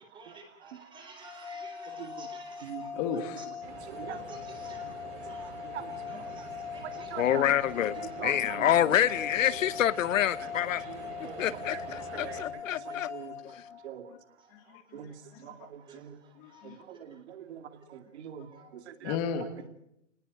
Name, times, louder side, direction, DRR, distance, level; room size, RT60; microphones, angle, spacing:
voice 1, 0.0-3.4 3.8-5.0 5.3-5.5 6.1-7.1 7.8-8.0 8.5-8.6 9.6-9.8 11.2-11.3 12.4-12.5 12.9-13.0 13.5-13.6 15.9-16.0 16.5-17.0 18.5-18.6, right 3 dB, 10° right, 4.0 m, -52 dB
sound 1, 1.2-14.2, left 7 dB, 5° left, 4.3 m, -41 dB
voice 2, 2.0-2.3 2.6-2.8 3.9-4.2 5.7-5.9 6.2-6.3 7.1-7.4 8.0-9.0 10.4-10.5 10.9-13.3 13.8-14.0 14.9-15.1 15.4-16.2 16.6-18.5 18.9-19.2, right 10 dB, 55° right, 2.6 m, -43 dB
voice 3, 2.9-3.8 4.2-4.3 5.3-5.4 13.2-13.3 14.1-14.2 14.5-15.6 16.4-16.8 19.0-19.5, left 7 dB, 30° left, 2.2 m, -37 dB
sound 2, 3.6-12.4, right 5 dB, 40° right, 7.5 m, -46 dB
voice 4, 7.2-8.0 8.2-10.9 11.4-13.1 13.4-13.6, left 11 dB, 85° left, 1.1 m, -27 dB
29.0 x 19.5 x 6.5 m
hypercardioid pair, 170°, 38 cm